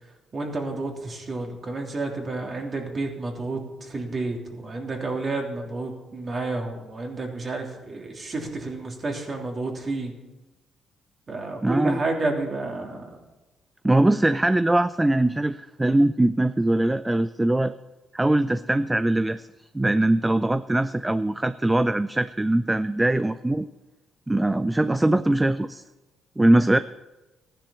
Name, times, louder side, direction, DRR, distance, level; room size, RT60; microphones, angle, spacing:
voice 1, 0.3-10.1 11.3-13.2, right 2 dB, 40° right, 1 dB, 3.2 m, -30 dB
voice 2, 11.6-12.0 13.8-17.7 18.1-19.5 19.7-23.7 24.3-25.8 26.4-26.8, right 1 dB, 10° right, 13 dB, 0.4 m, -21 dB
15.0 x 10.0 x 7.1 m, 1.1 s
cardioid pair, 90°, 0 cm